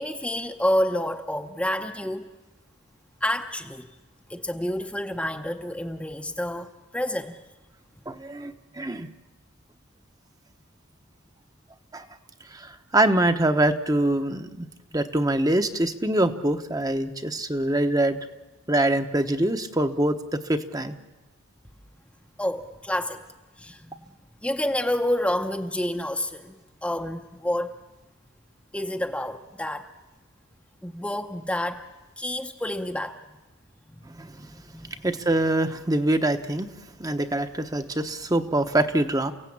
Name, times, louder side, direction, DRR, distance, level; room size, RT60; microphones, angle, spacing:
voice 1, 0.0-2.3 3.2-3.9 4.3-7.4 22.4-23.2 23.6-24.1 24.4-27.7 28.7-29.9 30.8-31.8 32.2-33.2 33.9-34.2 34.5-35.0, left 1 dB, 5° left, 5 dB, 0.8 m, -29 dB
voice 2, 8.1-9.1 11.9-12.1 12.5-14.7 14.9-18.2 18.7-20.9 34.0-34.5 35.0-36.7 37.0-39.3, right 1 dB, 20° right, 8 dB, 1.0 m, -24 dB
30.0 x 16.5 x 8.7 m, 1.2 s
head